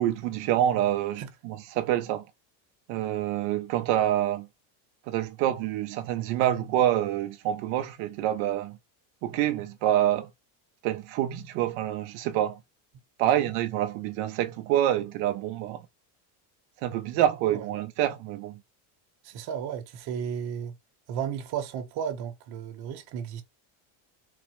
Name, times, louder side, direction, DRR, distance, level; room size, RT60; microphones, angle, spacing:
voice 1, 0.0-2.2 2.9-4.5 5.1-8.8 9.2-10.3 10.8-12.6 13.2-15.8 16.8-18.6, right 12 dB, 85° right, 0.6 m, -27 dB
voice 2, 19.2-20.7 21.1-23.4, right 8 dB, 50° right, 1.0 m, -34 dB
4.1 x 2.1 x 2.9 m
cardioid pair, 160°, 49 cm